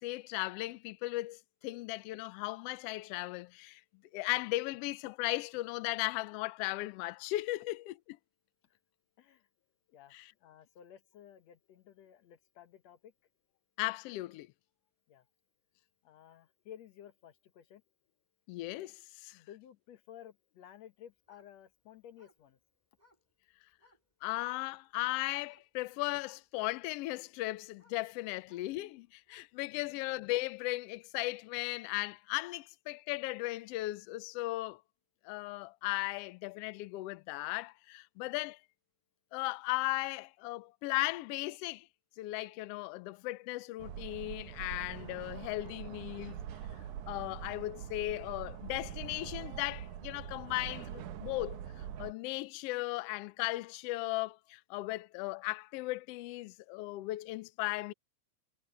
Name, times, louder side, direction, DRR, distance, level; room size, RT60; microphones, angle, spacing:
voice 1, 0.0-3.8 4.1-8.2 10.1-10.3 13.8-14.5 18.5-19.4 24.2-34.8 35.2-38.6 39.3-41.9 42.2-46.4 47.1-57.9, left 19 dB, 90° left, 1.3 m, -37 dB
voice 2, 9.2-9.5 9.9-13.1 15.1-15.3 16.0-17.8 19.3-22.6 29.7-30.0, left 10 dB, 65° left, 2.3 m, -55 dB
sound 1, 21.2-24.1 24.6-25.1 25.4-25.8 26.2-31.5 32.0-32.1, left 2 dB, 15° right, 3.3 m, -69 dB
sound 2, 43.8-52.1, right 9 dB, 90° right, 2.7 m, -44 dB
omnidirectional pair, 3.4 m